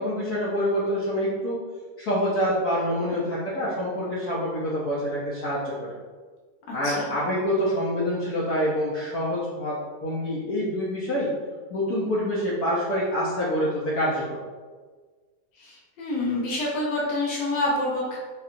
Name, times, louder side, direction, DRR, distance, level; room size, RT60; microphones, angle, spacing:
voice 1, 0.0-1.6 2.0-5.9 6.7-11.3 11.7-14.4, equal, 65° left, -7 dB, 1.1 m, -26 dB
voice 2, 15.6-18.2, left 2 dB, 85° left, -4 dB, 1.5 m, -27 dB
5.5 x 2.3 x 2.5 m, 1.4 s
omnidirectional pair, 1.9 m